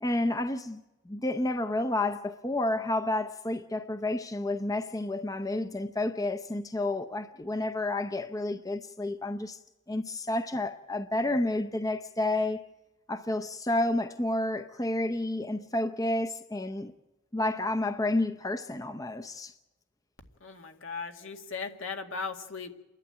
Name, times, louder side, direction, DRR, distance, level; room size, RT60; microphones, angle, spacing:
voice 1, 0.0-9.6 9.9-12.7 13.1-16.9 17.3-19.5, left 2 dB, 15° left, 0.6 m, -30 dB
voice 2, 20.4-22.8, left 4 dB, 80° left, 2.1 m, -38 dB
29.0 x 11.5 x 8.9 m
head